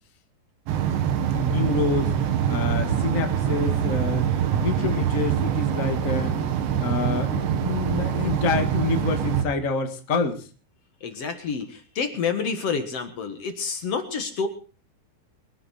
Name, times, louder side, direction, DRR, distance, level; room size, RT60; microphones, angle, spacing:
sound 1, 0.7-9.4, right 9 dB, 85° right, 3.9 m, -24 dB
voice 1, 1.3-2.1 2.5-4.3 4.5-6.5 6.8-10.5, left 3 dB, 85° left, 6 dB, 0.7 m, -27 dB
voice 2, 11.0-14.5, left 5 dB, 55° left, 8 dB, 1.8 m, -28 dB
23.5 x 11.5 x 4.2 m, 0.37 s
omnidirectional pair, 5.0 m